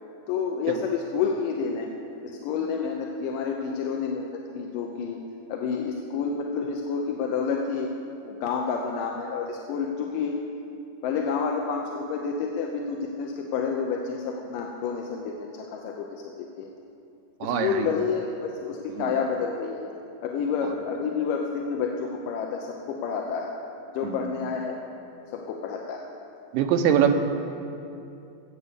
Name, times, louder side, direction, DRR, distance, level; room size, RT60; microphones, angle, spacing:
voice 1, 0.3-1.9 2.2-5.2 5.5-7.9 8.3-10.4 11.0-16.7 17.4-19.8 20.2-23.5 23.9-24.8 25.3-26.1, left 6 dB, 85° left, 1 dB, 2.4 m, -29 dB
voice 2, 17.4-17.9 18.9-19.1 20.6-20.7 24.0-24.3 26.5-27.1, right 9 dB, 85° right, 5 dB, 2.5 m, -24 dB
16.0 x 8.2 x 6.8 m, 2.7 s
omnidirectional pair, 3.9 m